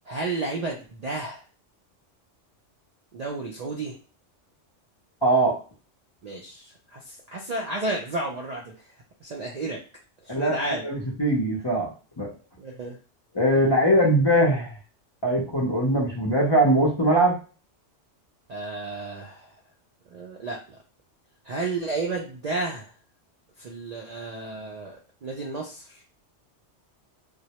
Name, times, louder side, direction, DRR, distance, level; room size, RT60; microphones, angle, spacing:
voice 1, 0.1-1.4 3.1-4.0 6.2-8.6 9.2-9.8 10.2-10.8 12.6-13.0 18.5-19.5 20.1-20.8 21.4-22.9 23.6-25.0 25.2-26.0, right 2 dB, 85° right, -1 dB, 0.3 m, -32 dB
voice 2, 5.2-5.6 10.3-11.9 12.2-12.3 13.3-14.7 15.2-17.4, right 1 dB, 35° left, -5 dB, 0.4 m, -21 dB
2.2 x 2.0 x 2.8 m, 0.36 s
omnidirectional pair, 1.2 m